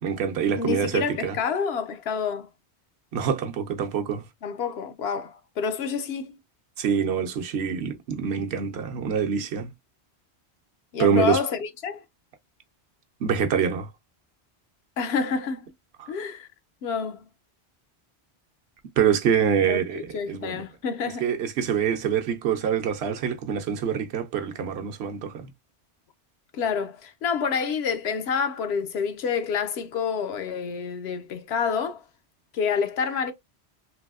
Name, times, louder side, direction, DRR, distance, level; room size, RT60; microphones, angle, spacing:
voice 1, 0.0-1.4 3.1-4.2 6.8-9.7 11.0-11.4 13.2-13.9 16.0-16.1 19.0-20.6 21.2-25.5, right 7 dB, 75° right, 0.9 m, -25 dB
voice 2, 0.6-2.5 4.4-6.4 10.9-12.0 15.0-15.7 16.1-16.5 16.8-17.2 19.7-21.2 26.5-32.0 32.5-33.3, left 6 dB, 75° left, 0.8 m, -28 dB
3.4 x 2.6 x 2.3 m
omnidirectional pair, 1.1 m